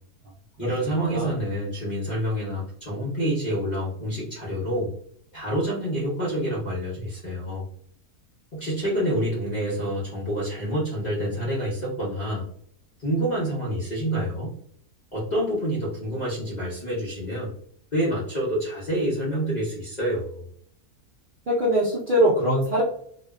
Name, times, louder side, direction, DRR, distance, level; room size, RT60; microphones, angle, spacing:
voice 1, 0.6-4.9 5.3-7.6 8.5-12.5 13.0-14.5 15.1-17.5 17.9-20.5, right 1 dB, 50° left, -7 dB, 0.5 m, -27 dB
voice 2, 21.5-22.8, equal, 80° right, -6 dB, 0.4 m, -22 dB
2.5 x 2.2 x 2.2 m, 0.63 s
omnidirectional pair, 1.7 m